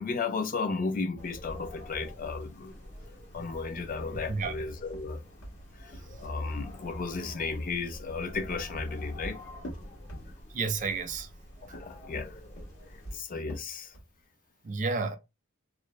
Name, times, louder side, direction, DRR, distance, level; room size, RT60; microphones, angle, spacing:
voice 1, 0.0-2.7 3.3-5.2 5.8-5.9 6.2-9.4 11.6-12.3 13.1-13.9, left 4 dB, 40° left, 0.4 m, -34 dB
sound 1, 1.2-13.2, left 1 dB, 60° left, 0.9 m, -47 dB
sound 2, 3.9-6.6 8.3-10.7 11.6-14.2, equal, 85° left, 1.2 m, -46 dB
voice 2, 10.5-11.3 14.6-15.2, right 4 dB, 40° right, 0.4 m, -31 dB
2.4 x 2.0 x 2.9 m
head